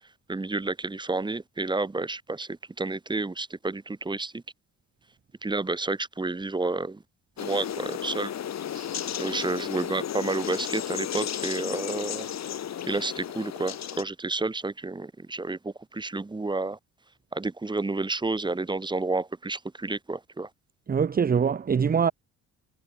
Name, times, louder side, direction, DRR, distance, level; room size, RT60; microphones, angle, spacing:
voice 1, 0.3-4.4 5.4-7.0 7.4-8.3 8.7-8.9 9.2-12.3 12.9-16.8 17.3-20.5, right 3 dB, 15° right, 1.3 m, -30 dB
sound 1, 7.4-14.0, left 10 dB, 60° left, 3.0 m, -33 dB
voice 2, 20.9-22.1, right 6 dB, 30° right, 0.8 m, -23 dB
cardioid pair, 90°, 30 cm